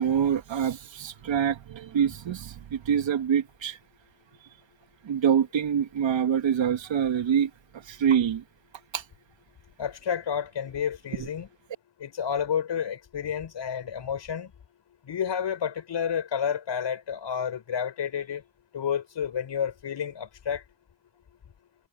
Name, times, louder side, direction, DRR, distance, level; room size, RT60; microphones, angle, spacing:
voice 1, 0.0-3.8 5.0-7.5 7.9-8.4 8.9-9.0, right 8 dB, 75° right, 2.8 m, -25 dB
voice 2, 9.8-11.5 12.0-14.5 15.0-18.4 18.7-20.6, left 8 dB, 65° left, 6.0 m, -30 dB
cardioid pair, 65°, 45 cm